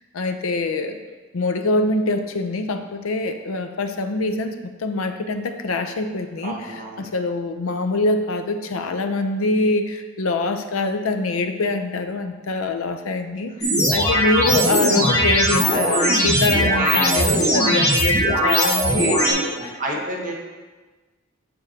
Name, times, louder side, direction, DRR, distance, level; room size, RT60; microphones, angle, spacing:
voice 1, 0.1-1.0 1.3-19.8, left 2 dB, 85° left, 7 dB, 0.6 m, -24 dB
voice 2, 6.4-7.1 16.7-17.2 18.4-18.5 19.3-20.3, right 1 dB, 40° right, -2 dB, 1.1 m, -30 dB
sound 1, 13.6-19.3, equal, 30° left, 1.6 m, -19 dB
7.5 x 6.9 x 2.8 m, 1.3 s
head